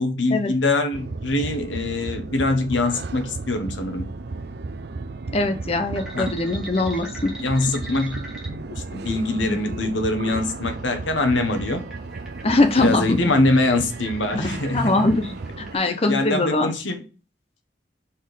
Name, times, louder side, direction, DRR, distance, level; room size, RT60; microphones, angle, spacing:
voice 1, 0.0-4.1 6.1-6.3 7.4-8.2 8.8-11.8 12.8-15.1 15.8-17.0, left 2 dB, 75° left, 1.2 m, -23 dB
sound 1, 0.9-15.8, right 3 dB, 55° right, 0.5 m, -34 dB
voice 2, 5.3-7.3 12.4-13.2 14.3-16.7, left 2 dB, 30° left, 0.7 m, -22 dB
sound 2, 6.0-16.2, equal, 5° right, 1.9 m, -40 dB
5.8 x 4.4 x 5.0 m
head